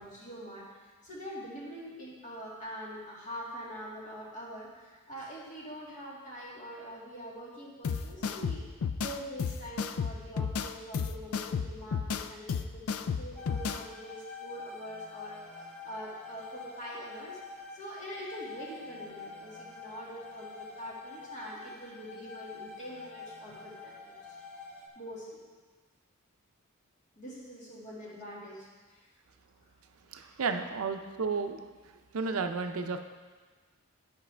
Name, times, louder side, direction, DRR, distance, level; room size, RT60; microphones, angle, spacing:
voice 1, 0.0-8.6 9.0-15.4 15.8-17.4 17.7-24.4 25.0-25.4 27.2-29.1 30.3-30.4, equal, 35° left, -6 dB, 2.1 m, -44 dB
sound 1, 7.8-13.8, left 6 dB, 70° left, 0.4 m, -33 dB
sound 2, 13.4-24.9, left 4 dB, 5° left, 0.8 m, -46 dB
voice 2, 30.1-31.6 32.1-33.0, right 4 dB, 70° right, 6 dB, 0.6 m, -32 dB
12.0 x 5.3 x 3.4 m, 1.4 s
head